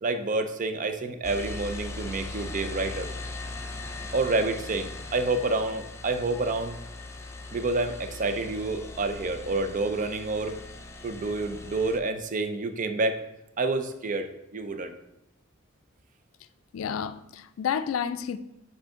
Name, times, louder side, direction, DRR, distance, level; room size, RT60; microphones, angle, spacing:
voice 1, 0.0-3.1 4.1-6.8 7.5-10.6 11.0-13.2 13.6-14.9, right 3 dB, 40° right, 0.5 m, -28 dB
sound 1, 1.2-12.0, left 3 dB, 15° left, 0.4 m, -39 dB
voice 2, 16.7-18.4, left 7 dB, 80° left, 0.3 m, -30 dB
7.4 x 3.7 x 3.7 m
head